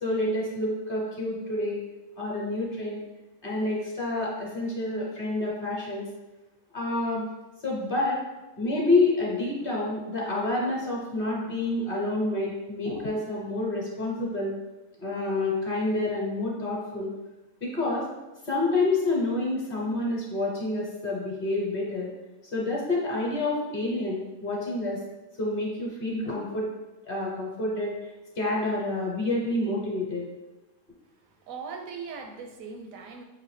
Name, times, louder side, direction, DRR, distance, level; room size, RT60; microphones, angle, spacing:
voice 1, 0.0-1.8 2.2-3.0 3.4-6.0 6.7-7.2 7.6-8.2 8.6-14.5 15.0-17.1 17.6-18.0 18.4-22.1 22.5-25.0 25.4-26.7 27.1-27.9 28.3-30.3, left 2 dB, 45° left, -3 dB, 1.0 m, -28 dB
voice 2, 31.5-33.2, right 5 dB, 80° right, 4 dB, 1.0 m, -39 dB
6.1 x 2.5 x 3.1 m, 1.1 s
omnidirectional pair, 1.4 m